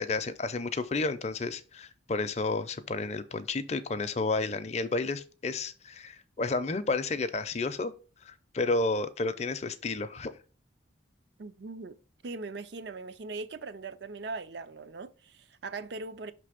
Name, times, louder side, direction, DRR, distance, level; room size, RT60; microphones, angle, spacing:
voice 1, 0.0-7.9 8.2-10.3, left 3 dB, 35° left, 0.5 m, -31 dB
voice 2, 11.4-12.0 12.2-16.3, right 3 dB, 65° right, 0.5 m, -40 dB
5.8 x 3.3 x 4.9 m
head